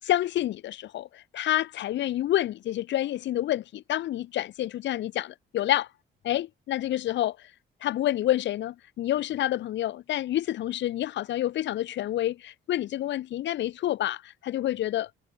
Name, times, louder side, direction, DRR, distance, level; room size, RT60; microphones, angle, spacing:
voice 1, 0.0-5.9 6.2-7.4 7.8-15.1, left 13 dB, 65° left, 0.6 m, -28 dB
cardioid pair, 90°, 20 cm